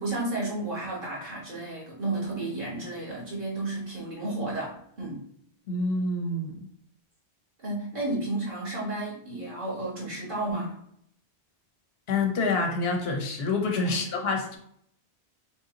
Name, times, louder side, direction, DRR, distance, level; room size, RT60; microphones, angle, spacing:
voice 1, 0.0-5.2 7.6-10.8 13.8-14.0, right 2 dB, 55° right, -5 dB, 1.6 m, -32 dB
voice 2, 5.7-6.7 12.1-14.6, left 3 dB, 70° left, 2 dB, 1.0 m, -27 dB
3.4 x 2.7 x 3.8 m, 0.67 s
omnidirectional pair, 1.1 m